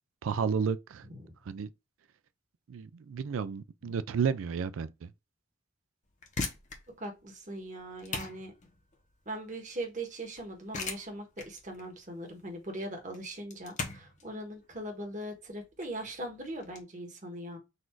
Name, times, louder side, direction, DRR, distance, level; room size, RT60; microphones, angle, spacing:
voice 1, 0.2-1.1 1.5-1.7 2.7-5.1, right 6 dB, 85° right, 0.4 m, -32 dB
sound 1, 6.0-16.8, left 4 dB, 35° left, 0.9 m, -41 dB
voice 2, 7.0-8.5 9.3-17.6, right 1 dB, 40° right, 1.3 m, -40 dB
4.1 x 2.6 x 4.4 m
head